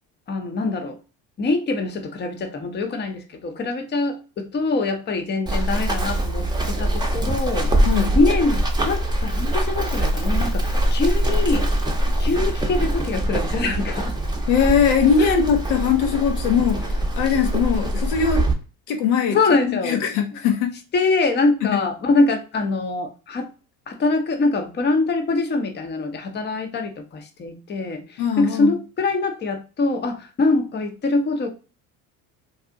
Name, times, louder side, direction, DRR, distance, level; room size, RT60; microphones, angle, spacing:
voice 1, 0.3-1.0 1.4-7.9 8.2-11.7 12.2-14.2 15.2-15.6 19.3-20.0 20.9-23.5 23.9-31.5, left 3 dB, 25° left, 0.7 m, -24 dB
Run, 5.5-18.5, right 1 dB, 10° right, 0.7 m, -23 dB
voice 2, 14.5-18.5 18.9-19.4 19.9-20.7 21.7-21.8 28.2-28.7, left 7 dB, 80° left, 0.8 m, -20 dB
2.6 x 2.4 x 3.6 m
hypercardioid pair, 75°, 43 cm